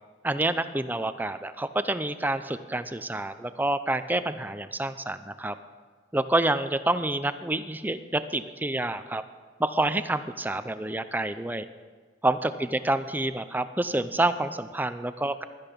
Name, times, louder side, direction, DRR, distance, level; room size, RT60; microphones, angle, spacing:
voice 1, 0.2-5.5 6.1-9.2 9.6-11.7 12.2-15.4, right 2 dB, 10° right, 11 dB, 0.5 m, -28 dB
16.0 x 12.0 x 5.3 m, 1.5 s
head